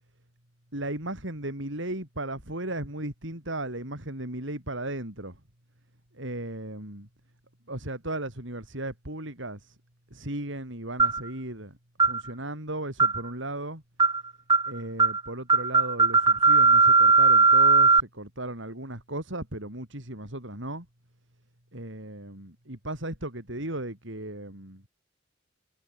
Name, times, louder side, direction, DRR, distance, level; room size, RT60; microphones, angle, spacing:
voice 1, 0.7-5.4 6.1-7.1 7.7-9.8 10.1-11.8 12.0-13.8 14.7-20.9 21.7-24.8, right 1 dB, 65° right, 6.1 m, -36 dB
sound 1, 11.0-11.3 12.0-12.2 13.0-13.3 14.0-14.2 14.5-14.7 15.0-15.2 15.5-18.0, right 4 dB, 25° right, 2.5 m, -19 dB
head